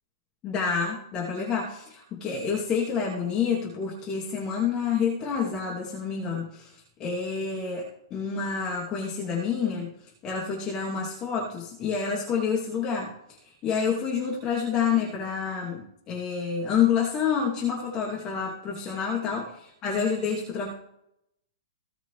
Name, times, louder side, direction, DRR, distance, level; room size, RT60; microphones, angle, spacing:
voice 1, 0.4-13.1 13.4-20.7, left 6 dB, 25° left, -3 dB, 2.8 m, -28 dB
17.5 x 5.9 x 3.3 m, 0.79 s
figure-of-eight pair, 110°, 3 cm